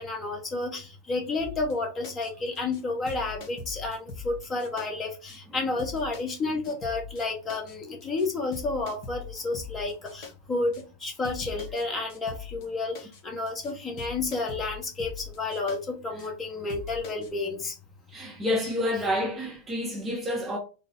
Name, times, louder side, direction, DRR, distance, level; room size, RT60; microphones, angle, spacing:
voice 1, 0.0-13.0 13.2-17.7, left 3 dB, 20° left, 1.1 m, -31 dB
sound 1, 1.4-1.7 2.0-2.3 2.6-2.8 3.1-4.9 5.3-5.4 5.8-6.4 6.6-7.2 7.5-7.7 8.0-8.3 8.5-10.3 10.7-10.8 11.2-11.8 12.1-12.7 12.9-13.2 13.5-13.7 14.0-15.8 16.2-16.3 16.7-17.3, left 5 dB, 40° left, 1.0 m, -41 dB
voice 2, 18.1-20.6, left 1 dB, 15° right, 0.6 m, -29 dB
4.0 x 2.1 x 3.9 m
figure-of-eight pair, 90°, 0 cm